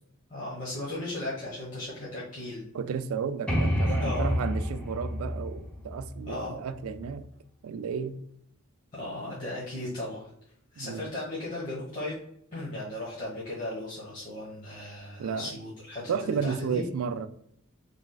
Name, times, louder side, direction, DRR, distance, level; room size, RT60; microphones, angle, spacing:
voice 1, 0.3-2.6 4.0-4.3 6.3-6.6 8.9-10.3 10.7-12.2 12.5-16.8, left 1 dB, 35° left, 1.2 m, -36 dB
voice 2, 2.7-7.3 7.6-8.2 10.8-11.1 15.2-15.6 16.1-17.3, right 6 dB, 80° right, 0.3 m, -32 dB
sound 1, 3.5-7.1, equal, 5° left, 0.6 m, -29 dB
3.4 x 2.4 x 3.8 m
head